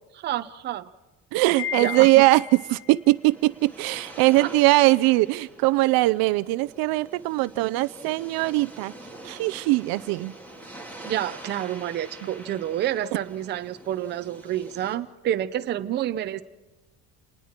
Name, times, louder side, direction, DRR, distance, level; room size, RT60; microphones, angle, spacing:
voice 1, 0.1-0.9 1.8-2.3 4.4-4.5 11.0-16.4, right 11 dB, 25° right, 9 dB, 0.6 m, -29 dB
voice 2, 1.3-8.9 9.2-10.3, right 20 dB, 65° right, 15 dB, 0.6 m, -21 dB
Wind chime, 1.6-3.0, left 10 dB, 75° left, 3.1 m, -33 dB
sound 1, 2.7-14.9, right 2 dB, 5° left, 2.4 m, -45 dB
29.0 x 20.0 x 4.5 m, 1.2 s
cardioid pair, 180°, 39 cm